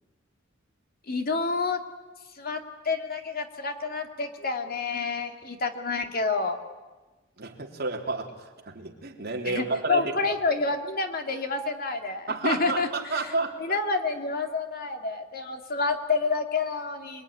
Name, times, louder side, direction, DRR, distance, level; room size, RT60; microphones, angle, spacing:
voice 1, 1.1-1.8 2.3-2.6 2.8-6.6 9.5-13.3 13.6-17.2, left 4 dB, 50° left, 5 dB, 2.6 m, -28 dB
voice 2, 7.4-8.4 8.7-10.1 12.3-13.8, right 3 dB, 55° right, 1 dB, 3.6 m, -30 dB
27.5 x 22.0 x 10.0 m, 1.2 s
head